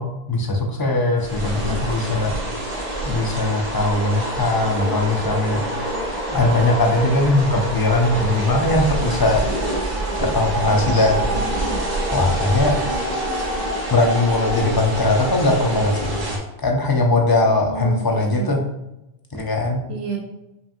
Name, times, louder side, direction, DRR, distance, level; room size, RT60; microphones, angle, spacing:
voice 1, 0.0-2.3 3.1-5.7 6.3-9.5 10.2-11.3 12.1-12.8 13.9-18.6 19.3-19.8, left 2 dB, 35° left, 1 dB, 0.3 m, -20 dB
sound 1, 1.2-16.4, right 1 dB, 60° right, 1.3 m, -26 dB
voice 2, 12.8-13.4 17.5-18.5 19.9-20.2, right 5 dB, 85° right, -1 dB, 1.2 m, -32 dB
5.4 x 2.5 x 2.6 m, 0.92 s
omnidirectional pair, 1.1 m